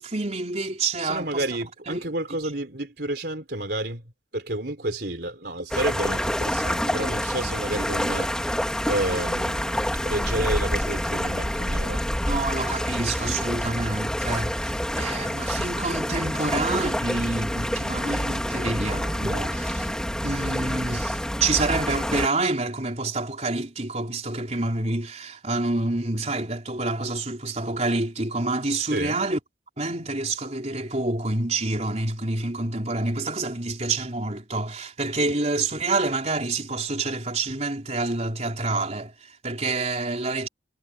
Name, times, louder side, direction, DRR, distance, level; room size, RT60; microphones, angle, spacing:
voice 1, 0.0-1.4 1.9-2.0 12.2-19.9 20.2-29.4 29.8-40.5, right 2 dB, 35° right, 4.0 m, -28 dB
voice 2, 1.0-4.0 4.3-12.3 28.9-29.2, right 1 dB, 60° right, 4.2 m, -30 dB
sound 1, 5.7-22.3, equal, 5° left, 3.3 m, -27 dB
head